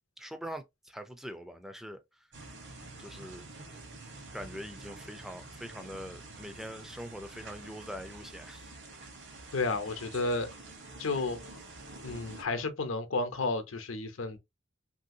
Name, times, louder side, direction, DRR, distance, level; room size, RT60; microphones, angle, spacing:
voice 1, 0.2-2.3 3.0-3.4 4.3-8.7, equal, ahead, 0.3 m, -43 dB
sound 1, 2.3-12.4, right 2 dB, 60° right, 1.0 m, -48 dB
voice 2, 9.5-10.5 11.0-11.4 12.0-14.4, left 3 dB, 80° left, 0.7 m, -32 dB
3.1 x 2.7 x 2.6 m
head